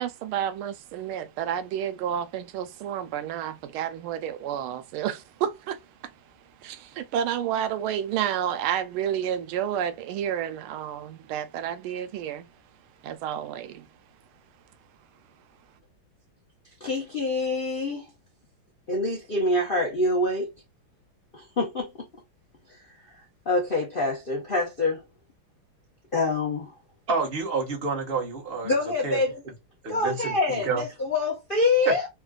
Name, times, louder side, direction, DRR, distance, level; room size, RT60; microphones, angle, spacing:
voice 1, 0.0-6.1 6.6-12.5 13.0-13.9, right 9 dB, 85° right, 1.4 m, -30 dB
voice 2, 16.8-18.1 18.9-20.5 21.3-21.9 23.5-25.0 26.1-26.7 28.6-29.4 29.9-32.1, left 2 dB, 55° left, 0.6 m, -25 dB
voice 3, 27.1-28.7 29.0-29.2 29.8-30.8 31.8-31.9, right 4 dB, 45° right, 0.8 m, -28 dB
3.7 x 2.4 x 2.2 m
omnidirectional pair, 2.3 m